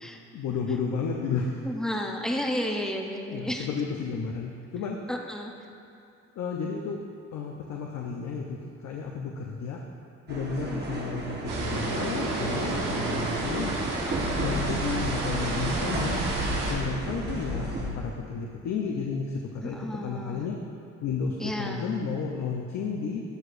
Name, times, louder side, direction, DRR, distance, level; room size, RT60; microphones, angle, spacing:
voice 1, 0.3-1.7 3.3-5.0 6.4-7.0 7.3-9.8 10.3-13.8 14.4-16.3 16.7-20.6 21.0-23.2, left 5 dB, 65° left, 0 dB, 0.7 m, -32 dB
voice 2, 1.7-3.7 5.1-5.5 10.6-10.9 12.7-13.3 19.6-20.4 21.4-21.8, equal, ahead, 1 dB, 0.7 m, -32 dB
sound 1, 10.3-17.9, right 1 dB, 35° right, 1.2 m, -33 dB
sound 2, 11.5-16.7, right 2 dB, 85° right, 1.4 m, -30 dB
13.0 x 4.8 x 2.5 m, 2.7 s
cardioid pair, 90°, 30 cm